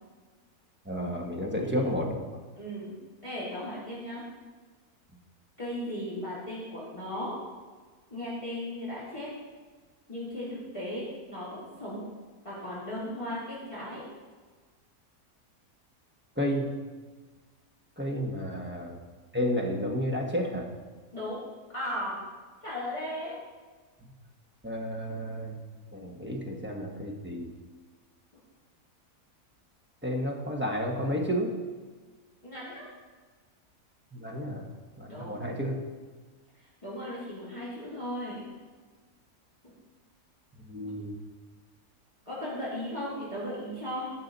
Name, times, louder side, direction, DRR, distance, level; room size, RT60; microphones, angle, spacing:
voice 1, 0.9-2.2 16.4-16.7 18.0-19.0 19.3-20.7 24.6-25.6 25.9-27.5 30.0-31.5 34.1-34.7 35.0-35.8 40.7-41.2, equal, 10° right, 0 dB, 1.0 m, -31 dB
voice 2, 2.5-2.9 3.2-4.2 5.6-7.4 8.1-9.3 10.1-12.1 12.4-14.0 21.1-21.4 21.7-22.2 22.6-23.4 32.4-32.9 35.1-35.4 36.8-38.4 39.6-39.7 42.3-44.1, left 1 dB, 20° left, -8 dB, 2.6 m, -36 dB
14.0 x 6.0 x 4.0 m, 1.4 s
omnidirectional pair, 1.6 m